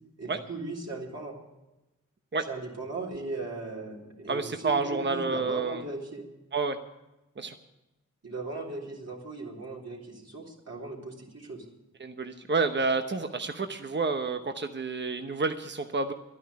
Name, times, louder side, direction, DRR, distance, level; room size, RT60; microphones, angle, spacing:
voice 1, 0.2-1.4 2.5-6.3 8.2-11.6, right 3 dB, 55° right, -3 dB, 3.5 m, -38 dB
voice 2, 4.3-5.9 6.5-6.8 7.4-7.5 12.0-16.1, right 4 dB, 35° right, 7 dB, 1.0 m, -29 dB
11.0 x 9.9 x 9.5 m, 0.99 s
cardioid pair, 40°, 31 cm